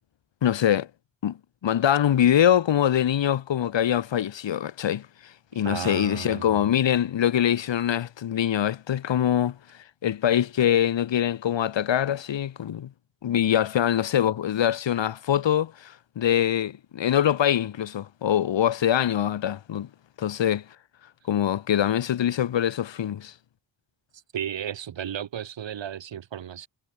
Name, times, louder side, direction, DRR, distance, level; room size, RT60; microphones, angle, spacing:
voice 1, 0.4-0.9 1.2-9.6 10.0-12.9 13.2-19.9 20.2-20.6 21.3-23.3, left 10 dB, 85° left, 2.7 m, -24 dB
voice 2, 5.5-6.7 24.3-26.7, right 9 dB, 85° right, 6.5 m, -34 dB
wide cardioid pair, 160°, 43 cm